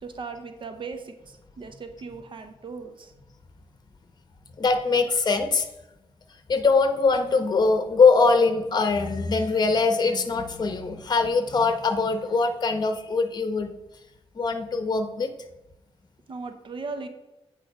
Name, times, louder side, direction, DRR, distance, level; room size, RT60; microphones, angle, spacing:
voice 1, 0.0-3.1 16.3-17.1, right 4 dB, 50° right, 8 dB, 0.8 m, -38 dB
voice 2, 4.6-5.7 6.5-13.7 14.4-15.3, left 4 dB, 40° left, 8 dB, 0.9 m, -22 dB
8.3 x 5.0 x 4.9 m, 0.95 s
wide cardioid pair, 110°, 11 cm